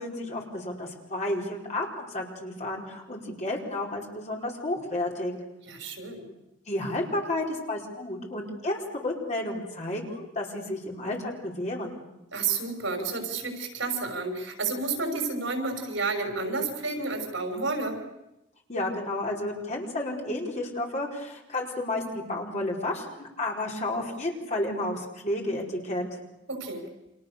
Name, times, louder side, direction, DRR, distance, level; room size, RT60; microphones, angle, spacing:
voice 1, 0.0-5.3 6.7-12.0 18.7-26.0, left 1 dB, 35° left, 0 dB, 4.8 m, -31 dB
voice 2, 5.7-6.2 12.3-18.0 26.5-26.8, right 3 dB, 75° right, 4 dB, 6.0 m, -30 dB
30.0 x 26.5 x 6.8 m, 0.91 s
head